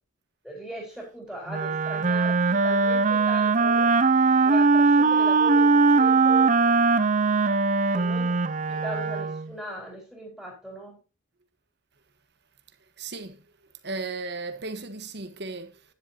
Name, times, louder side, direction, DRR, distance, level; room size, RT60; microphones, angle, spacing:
voice 1, 0.4-3.9 4.4-6.8 7.9-11.0, right 1 dB, 5° left, 4.1 m, -39 dB
Wind instrument woodwind instrument, 1.5-9.6, right 4 dB, 35° right, 0.6 m, -21 dB
voice 2, 13.0-13.4 13.8-15.8, right 3 dB, 55° right, 1.2 m, -35 dB
10.5 x 10.5 x 2.8 m
head